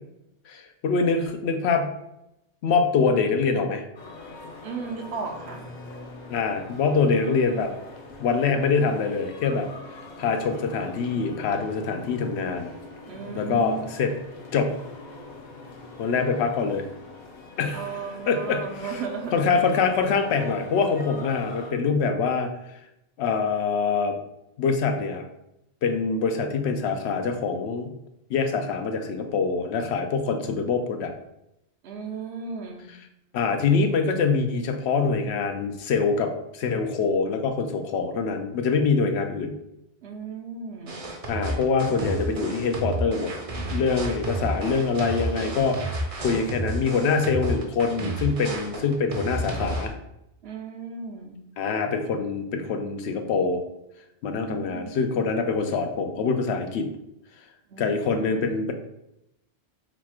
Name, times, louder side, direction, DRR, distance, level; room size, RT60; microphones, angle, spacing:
voice 1, 0.5-1.9 2.6-3.8 6.3-7.7 8.2-9.7 10.2-12.7 13.3-14.1 14.5-14.8 16.0-16.9 17.6-17.9 18.3-18.9 19.3-22.5 23.2-24.1 24.6-25.2 25.8-28.0 28.3-31.1 33.3-39.5 41.3-43.3 43.7-49.9 51.6-53.6 54.2-56.9 57.8-58.7, left 5 dB, 80° left, 6 dB, 0.8 m, -24 dB
sound 1, 4.0-21.7, left 2 dB, 50° left, 0.6 m, -42 dB
voice 2, 4.6-5.7 13.1-13.8 17.7-19.3 31.8-32.9 40.0-41.0 50.4-51.4 54.3-55.0 57.7-58.6, right 5 dB, 75° right, 2 dB, 0.9 m, -35 dB
sound 2, 40.9-49.9, right 1 dB, 40° right, 0.6 m, -31 dB
4.1 x 2.4 x 4.2 m, 0.85 s
omnidirectional pair, 1.1 m